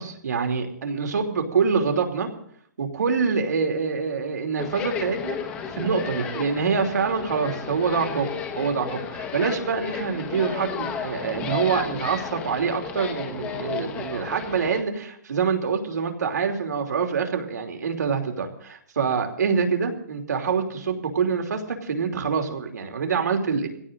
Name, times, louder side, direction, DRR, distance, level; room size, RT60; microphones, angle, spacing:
voice 1, 0.0-2.3 2.8-5.4 5.7-23.7, right 5 dB, 85° right, 3 dB, 3.1 m, -25 dB
sound 1, 4.6-14.8, left 6 dB, 15° left, 1.1 m, -33 dB
22.5 x 16.5 x 3.8 m, 0.64 s
hypercardioid pair, 170°, 9 cm